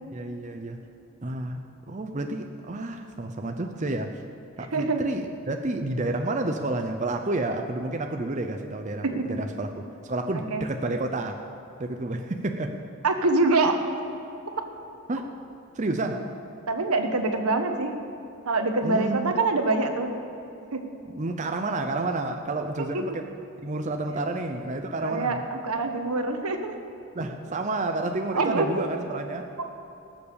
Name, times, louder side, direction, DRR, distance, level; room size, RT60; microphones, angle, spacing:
voice 1, 0.1-0.8 1.2-4.2 4.6-11.4 11.8-12.8 15.1-15.3 15.7-16.2 18.8-19.3 21.1-23.2 23.6-25.4 27.1-29.7, right 2 dB, 35° right, 4 dB, 0.6 m, -30 dB
voice 2, 4.7-5.0 9.0-9.1 10.3-10.6 13.0-13.8 16.7-17.9 18.5-20.1 20.7-21.0 22.9-23.0 25.0-26.7 28.3-28.7, right 3 dB, 80° right, 5 dB, 1.3 m, -25 dB
18.5 x 7.1 x 6.9 m, 2.9 s
head